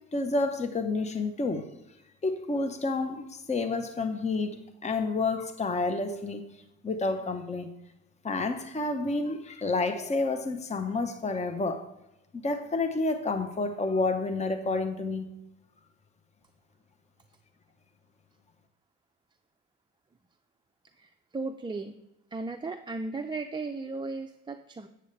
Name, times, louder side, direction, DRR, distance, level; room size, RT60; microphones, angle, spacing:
voice 1, 0.1-1.7 2.2-4.6 4.8-6.4 6.8-7.7 8.2-11.9 12.4-15.3, left 3 dB, 20° left, 7 dB, 0.8 m, -29 dB
voice 2, 21.0-22.0 22.3-24.9, right 3 dB, 15° right, 5 dB, 0.4 m, -36 dB
8.1 x 7.9 x 3.2 m, 0.89 s
cardioid pair, 90°, 30 cm